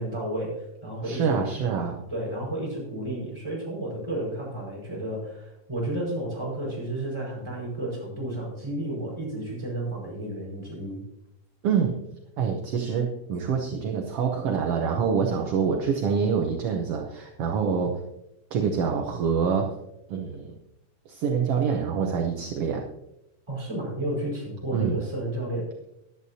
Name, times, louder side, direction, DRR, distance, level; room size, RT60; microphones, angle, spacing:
voice 1, 0.0-1.3 2.1-11.0 23.5-25.7, right 1 dB, 10° right, -5 dB, 4.9 m, -32 dB
voice 2, 1.0-2.0 11.6-12.0 12.4-17.9 18.5-19.7 20.1-20.5 21.1-22.9 24.7-25.0, right 6 dB, 65° right, 2 dB, 1.5 m, -26 dB
15.0 x 11.0 x 2.8 m, 0.85 s
omnidirectional pair, 3.7 m